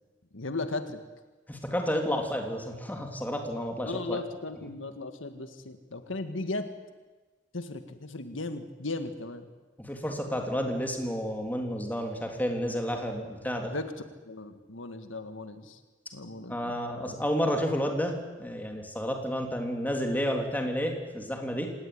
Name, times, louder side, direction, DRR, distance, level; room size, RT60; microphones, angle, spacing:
voice 1, 0.3-1.0 3.8-6.7 7.5-9.5 13.7-13.9 14.3-15.8 16.1-16.8, left 2 dB, 80° left, 9 dB, 1.8 m, -36 dB
voice 2, 1.5-4.2 9.8-13.7 16.5-21.7, equal, 10° left, 3 dB, 3.4 m, -31 dB
26.5 x 19.0 x 9.7 m, 1.2 s
head